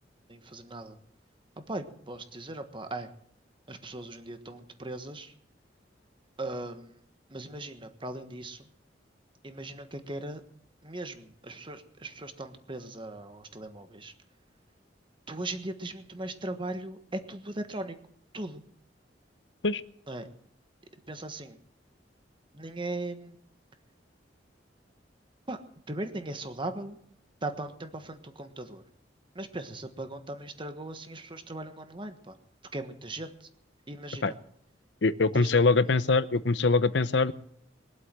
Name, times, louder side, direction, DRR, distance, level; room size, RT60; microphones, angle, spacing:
voice 1, 0.3-1.0 1.6-3.1 3.7-5.3 6.4-7.0 7.3-8.7 9.4-10.4 10.8-14.1 15.3-17.9 18.3-18.6 20.1-20.3 21.1-21.6 22.5-23.4 25.5-25.6 25.9-27.0 27.4-28.8 29.3-32.4 32.7-33.5 33.9-34.4 35.3-35.5, right 2 dB, 30° right, 8 dB, 1.4 m, -38 dB
voice 2, 35.0-37.3, left 3 dB, 75° left, 14 dB, 0.8 m, -23 dB
22.0 x 8.1 x 7.7 m, 0.69 s
head